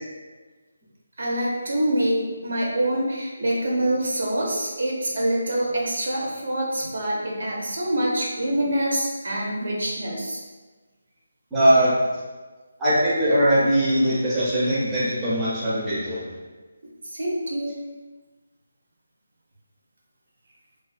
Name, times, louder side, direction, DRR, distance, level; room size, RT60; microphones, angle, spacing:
voice 1, 1.2-10.4 17.1-17.8, right 1 dB, 70° right, -2 dB, 0.6 m, -25 dB
voice 2, 11.5-12.0 12.8-16.2, equal, 10° right, -10 dB, 0.6 m, -20 dB
2.4 x 2.3 x 2.4 m, 1.3 s
figure-of-eight pair, 170°, 0 cm